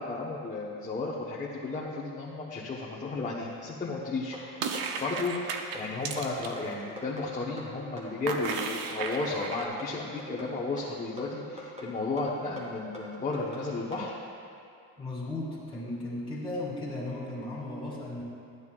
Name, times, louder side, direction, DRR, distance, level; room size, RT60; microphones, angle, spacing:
voice 1, 0.0-4.4 5.0-14.1, left 3 dB, 20° left, -6 dB, 1.0 m, -33 dB
sound 1, 4.3-14.1, right 1 dB, 20° right, 2.2 m, -43 dB
sound 2, 4.6-6.6 8.3-9.6, right 5 dB, 85° right, 0.8 m, -34 dB
voice 2, 15.0-18.2, left 2 dB, ahead, -8 dB, 2.5 m, -36 dB
14.0 x 9.4 x 2.4 m, 2.5 s
cardioid pair, 130°, 36 cm